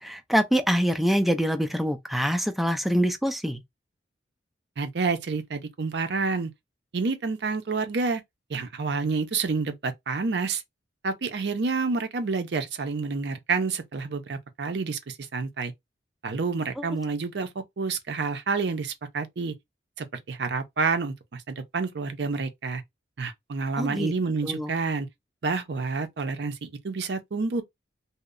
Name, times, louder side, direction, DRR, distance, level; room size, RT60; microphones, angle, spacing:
voice 1, 0.0-3.6 16.8-16.9 23.8-24.1 24.4-24.7, equal, ahead, 0.3 m, -25 dB
voice 2, 4.8-6.5 6.9-8.2 8.5-10.6 11.0-15.7 16.2-17.5 17.8-19.5 20.0-22.8 23.2-25.1 25.4-27.6, right 4 dB, 65° right, 0.5 m, -29 dB
2.7 x 2.0 x 2.4 m
head